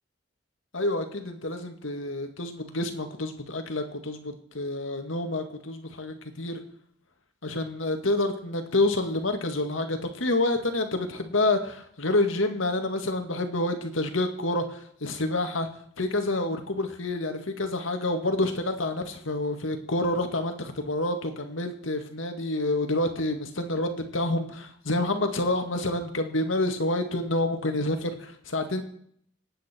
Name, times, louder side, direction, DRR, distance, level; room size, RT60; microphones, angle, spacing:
voice 1, 0.7-6.6 7.4-15.7 16.0-28.8, left 2 dB, 85° left, 6 dB, 2.1 m, -28 dB
27.0 x 9.2 x 4.6 m, 0.65 s
head